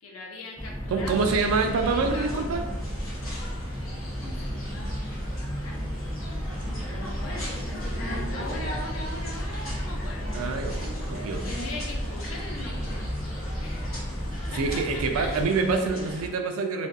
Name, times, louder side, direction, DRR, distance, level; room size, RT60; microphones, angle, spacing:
voice 1, 0.0-1.4 1.9-2.7 3.8-5.9 6.9-10.3 11.4-13.1 13.6-14.1 14.5-15.5, left 1 dB, 90° left, -1 dB, 0.6 m, -40 dB
sound 1, 0.6-15.4, equal, 10° left, 0.3 m, -33 dB
voice 2, 0.9-2.7 10.3-11.5 14.5-16.9, right 4 dB, 85° right, 5 dB, 0.3 m, -26 dB
sound 2, 1.0-16.3, equal, 65° left, 0.9 m, -38 dB
2.5 x 2.2 x 2.3 m, 1.1 s
head